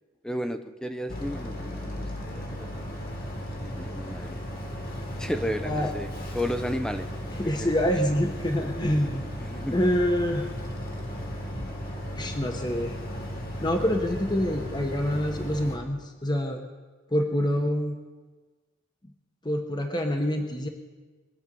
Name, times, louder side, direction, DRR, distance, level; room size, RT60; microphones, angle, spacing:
voice 1, 0.2-2.7 3.6-4.4 5.2-6.1 6.3-7.1 7.6-7.7 9.4-9.8, equal, 5° left, 8 dB, 0.7 m, -33 dB
Boat Water vehicle, 1.1-15.8, equal, 45° left, 2.2 m, -35 dB
voice 2, 7.3-9.2 9.7-10.5 12.2-13.0 13.6-16.6 17.1-18.0 19.4-20.7, equal, 20° left, 4 dB, 1.1 m, -26 dB
23.5 x 8.0 x 5.4 m, 1.3 s
head